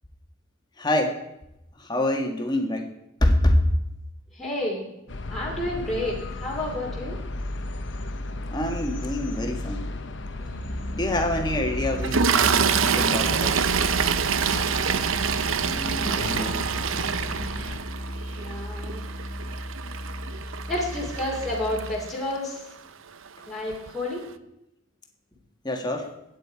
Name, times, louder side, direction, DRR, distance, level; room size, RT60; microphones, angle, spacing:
voice 1, 0.8-1.2 1.8-2.9 3.2-3.6 8.5-9.9 10.9-13.6 15.6-16.6 25.6-26.1, left 1 dB, 20° left, 3 dB, 1.7 m, -26 dB
voice 2, 4.3-7.2 18.4-19.0 20.7-22.7 23.5-24.3, left 1 dB, ahead, -6 dB, 2.8 m, -30 dB
sound 1, 5.1-17.8, left 2 dB, 60° left, 0.9 m, -34 dB
Musical instrument, 10.3-22.1, equal, 35° right, 3.9 m, -36 dB
Toilet flush, 12.0-22.3 23.3-23.4 23.7-23.9, right 7 dB, 75° right, 0.6 m, -26 dB
22.0 x 9.3 x 4.7 m, 0.87 s
head